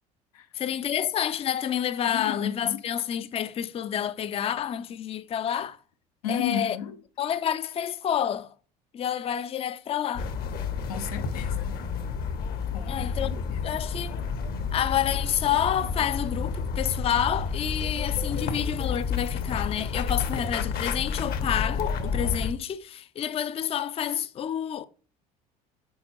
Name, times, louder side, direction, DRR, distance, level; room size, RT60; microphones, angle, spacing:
voice 1, 0.5-5.8 6.3-6.8 7.2-8.5 8.9-10.3 12.9-13.3 13.6-14.2 14.7-24.8, left 10 dB, 30° left, 0.5 m, -29 dB
voice 2, 2.1-2.8 6.2-7.0 10.9-11.8 12.7-13.9, left 9 dB, 85° left, 0.8 m, -33 dB
sound 1, 10.1-22.5, left 5 dB, 55° left, 1.1 m, -30 dB
9.0 x 4.2 x 3.1 m
hypercardioid pair, 75°, 19 cm